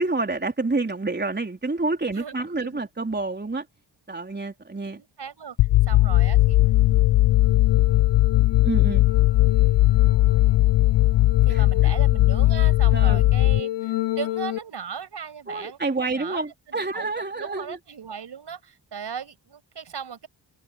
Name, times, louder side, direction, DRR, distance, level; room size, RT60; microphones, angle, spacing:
voice 1, 0.0-3.6 4.1-5.0 8.6-9.0 11.5-11.6 12.9-13.2 15.5-17.8, right 3 dB, 25° right, 3.9 m, -28 dB
voice 2, 2.1-2.8 4.9-5.6 5.9-6.6 10.3-10.5 11.4-20.3, right 7 dB, 65° right, 6.7 m, -37 dB
sound 1, 5.6-14.6, left 16 dB, 70° left, 0.6 m, -19 dB
cardioid pair, 65°, 44 cm